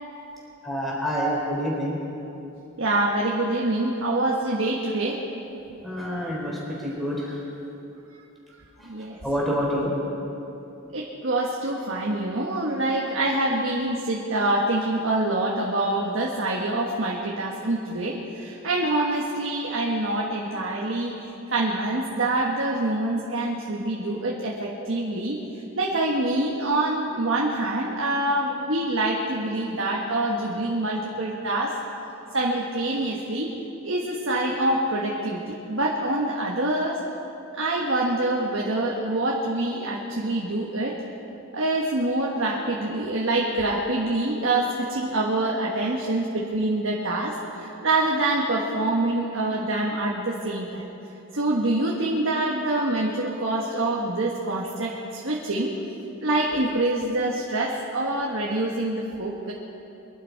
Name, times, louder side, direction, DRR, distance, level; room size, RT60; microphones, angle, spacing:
voice 1, 0.6-1.9 5.8-7.4 8.8-9.9, equal, ahead, -5 dB, 3.9 m, -28 dB
voice 2, 2.8-5.2 8.9-9.2 10.9-25.4 25.8-31.7 32.3-33.5 33.8-37.0 37.6-40.9 41.5-50.9 51.3-55.7 56.2-59.5, right 2 dB, 65° right, -3 dB, 1.5 m, -25 dB
23.5 x 12.0 x 4.7 m, 3.0 s
head